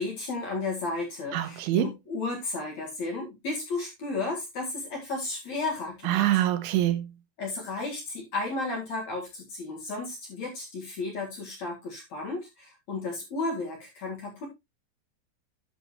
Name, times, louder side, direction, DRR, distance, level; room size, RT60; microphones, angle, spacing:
voice 1, 0.0-6.4 7.4-14.5, left 3 dB, 50° left, 2.5 m, -33 dB
voice 2, 1.3-1.9 6.1-7.1, right 13 dB, 85° right, 3.4 m, -25 dB
10.5 x 6.8 x 3.0 m
omnidirectional pair, 5.2 m